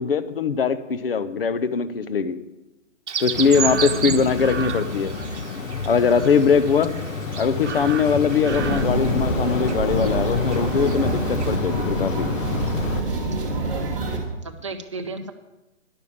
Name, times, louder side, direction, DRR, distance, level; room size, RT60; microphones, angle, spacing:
voice 1, 0.0-2.4 3.2-5.1 5.9-6.9 7.4-12.3, left 5 dB, 50° left, 13 dB, 0.7 m, -21 dB
Chirp tweet, 3.1-11.6, right 7 dB, 65° right, 0.9 m, -33 dB
sound 1, 3.3-13.0, left 5 dB, 85° left, 1.2 m, -28 dB
voice 2, 3.9-4.4 6.8-7.1 14.0-15.3, right 2 dB, 25° right, 3 dB, 0.6 m, -36 dB
sound 2, 8.5-14.2, right 2 dB, 5° right, 1.1 m, -26 dB
11.0 x 6.8 x 8.4 m, 1.0 s
hypercardioid pair, 175°, 38 cm